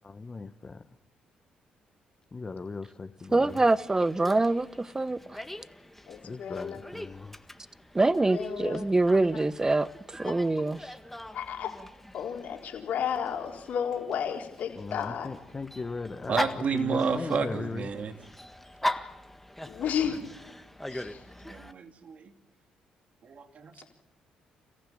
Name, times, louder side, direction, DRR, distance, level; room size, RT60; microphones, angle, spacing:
voice 1, 0.0-0.8 2.3-3.6 6.2-7.4 14.7-17.9, left 4 dB, 30° left, 5 dB, 1.5 m, -38 dB
voice 2, 3.3-5.2 7.9-10.9, right 2 dB, 20° right, 16 dB, 1.1 m, -25 dB
Dog, 3.4-21.7, left 1 dB, 5° left, 1.7 m, -41 dB
voice 3, 6.1-6.8 8.3-8.8 11.3-11.7 12.1-15.3 19.7-20.2 20.9-21.2, left 8 dB, 70° left, 1 dB, 4.2 m, -32 dB
voice 4, 16.3-18.1 21.4-22.3 23.2-23.9, right 5 dB, 55° right, 7 dB, 2.6 m, -31 dB
28.5 x 15.0 x 9.0 m, 0.87 s
supercardioid pair, 60°, 3 cm